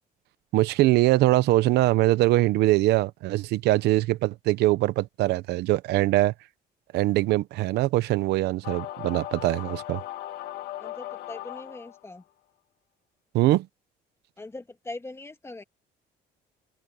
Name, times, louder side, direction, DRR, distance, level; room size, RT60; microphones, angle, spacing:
voice 1, 0.5-6.3 6.9-10.0 13.3-13.7, right 17 dB, 80° right, 0.9 m, -22 dB
sound 1, 8.6-12.1, left 14 dB, 75° left, 1.7 m, -38 dB
voice 2, 10.8-12.2 14.4-15.6, left 2 dB, 15° left, 2.0 m, -41 dB
open air
cardioid pair, 110°, 17 cm